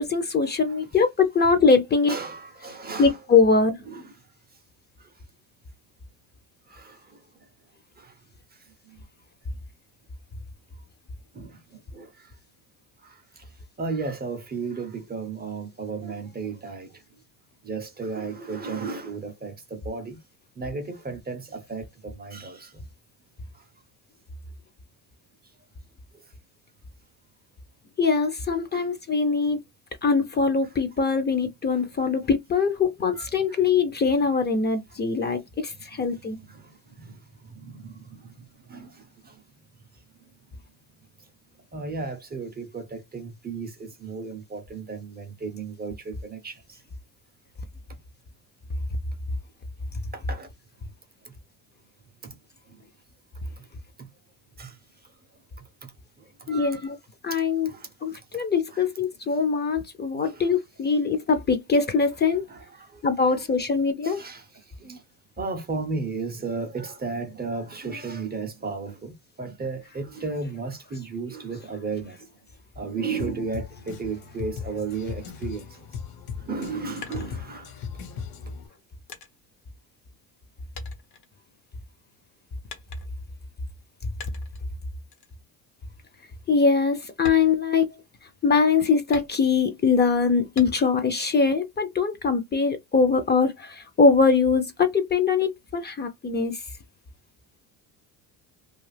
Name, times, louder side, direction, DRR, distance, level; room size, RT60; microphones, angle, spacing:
voice 1, 0.0-2.2 3.0-3.8 28.0-29.6 30.0-36.4 56.5-57.0 57.2-57.7 58.0-62.4 63.0-64.2 86.5-87.9 88.4-96.6, left 5 dB, 25° left, 0.6 m, -22 dB
voice 2, 2.1-3.2 3.9-4.1 5.0-5.1 6.7-7.5 8.0-8.2 8.5-9.0 11.3-12.3 13.0-17.0 17.6-20.2 20.6-22.8 23.5-23.7 26.1-26.2 28.7-28.9 31.7-32.1 33.2-33.6 35.9-39.4 41.7-46.8 47.9-48.0 50.1-50.5 51.2-51.3 52.2-52.4 52.7-52.8 53.6-53.7 54.0-54.1 54.6-54.8 55.6-56.9 57.3-57.9 58.3-58.4 58.7-58.9 60.2-60.5 62.5-63.1 64.0-65.0 65.4-72.3 72.8-75.7 76.4-77.7 78.5-78.6, right 4 dB, 25° right, 0.6 m, -35 dB
Drum kit, 73.2-78.7, left 7 dB, 60° left, 1.1 m, -38 dB
sound 1, 77.0-78.0 78.6-80.5 80.8-81.9 82.7-83.3 84.2-84.7 85.1-85.4 85.8-85.9 86.3-86.5 87.1-88.3 89.1-89.8 90.6-91.1 91.5-92.3, left 6 dB, 80° left, 1.1 m, -44 dB
2.4 x 2.4 x 3.3 m
supercardioid pair, 90°, 41 cm